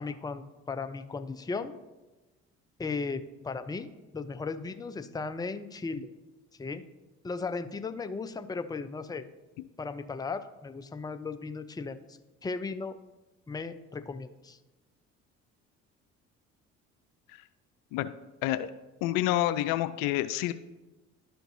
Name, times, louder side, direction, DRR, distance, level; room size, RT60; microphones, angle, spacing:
voice 1, 0.0-1.7 2.8-3.9 4.1-6.1 6.6-6.8 7.2-9.2 9.8-12.0 12.4-13.0 13.5-14.6, left 4 dB, 10° left, 10 dB, 0.5 m, -36 dB
voice 2, 19.0-20.5, left 14 dB, 70° left, 13 dB, 0.5 m, -28 dB
11.5 x 4.5 x 2.7 m, 1.1 s
hypercardioid pair, 55°, 34 cm